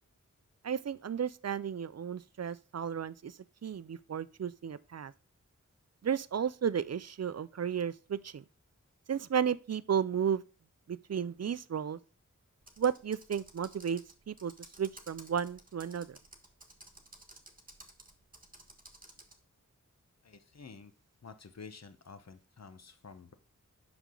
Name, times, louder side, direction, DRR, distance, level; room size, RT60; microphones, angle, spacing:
voice 1, 0.6-3.3 3.6-5.1 6.0-8.4 9.1-10.4 10.9-12.0 12.8-14.0 14.3-14.5 14.8-16.2, right 8 dB, 55° right, 0.5 m, -33 dB
Computer keyboard, 12.6-19.4, right 2 dB, 25° right, 1.4 m, -55 dB
voice 2, 20.2-20.9 21.2-23.3, left 5 dB, 55° left, 1.0 m, -50 dB
8.2 x 6.2 x 3.8 m
wide cardioid pair, 85°, 31 cm